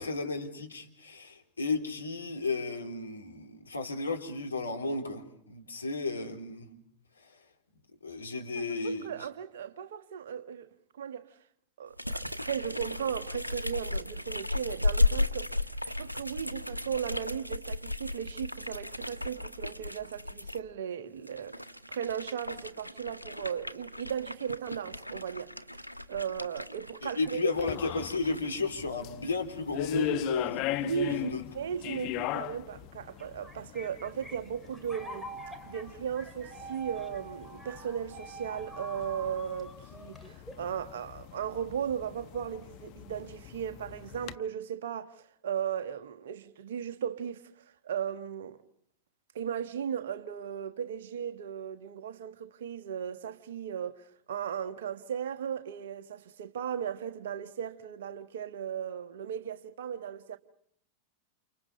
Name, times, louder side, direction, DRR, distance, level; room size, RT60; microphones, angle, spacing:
voice 1, 0.0-6.7 8.0-9.1 27.0-30.6 31.1-31.4, left 3 dB, 75° left, 3.7 m, -33 dB
voice 2, 8.6-10.7 10.9-11.3 11.8-15.5 15.9-25.8 26.1-27.7 30.8-35.3 35.7-47.4 47.8-48.6 49.3-60.4, right 8 dB, 60° right, 1.5 m, -36 dB
sound 1, 12.0-20.6 21.2-28.5, left 2 dB, 90° right, 1.0 m, -35 dB
sound 2, 27.6-44.4, left 16 dB, 40° left, 1.0 m, -40 dB
sound 3, 33.2-40.7, right 2 dB, ahead, 3.0 m, -46 dB
30.0 x 29.0 x 5.5 m
figure-of-eight pair, 90°, 0 cm